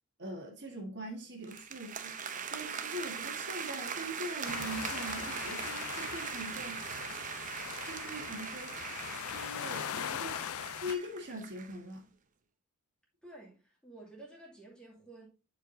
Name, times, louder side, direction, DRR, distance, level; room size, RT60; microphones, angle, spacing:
voice 1, 0.2-2.2 2.4-6.8 7.8-8.7 9.3-10.4 10.8-12.1, equal, 55° right, 1.5 m, -42 dB
sound 1, 1.4-11.8, right 6 dB, 35° right, 0.7 m, -41 dB
sound 2, 4.4-11.0, left 9 dB, 80° left, 0.4 m, -41 dB
voice 2, 13.2-15.3, right 2 dB, 5° left, 2.4 m, -52 dB
10.0 x 4.8 x 2.7 m
head